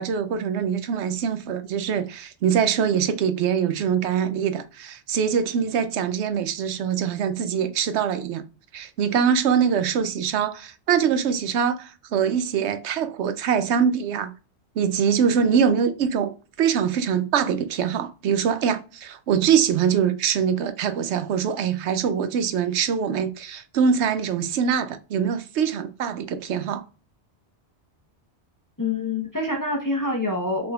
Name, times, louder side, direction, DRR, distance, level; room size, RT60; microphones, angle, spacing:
voice 1, 0.0-8.4 8.7-14.3 14.8-26.8, right 7 dB, 80° right, 0.9 m, -23 dB
voice 2, 28.8-30.7, left 2 dB, 20° left, 0.8 m, -26 dB
5.9 x 3.5 x 2.4 m
omnidirectional pair, 1.2 m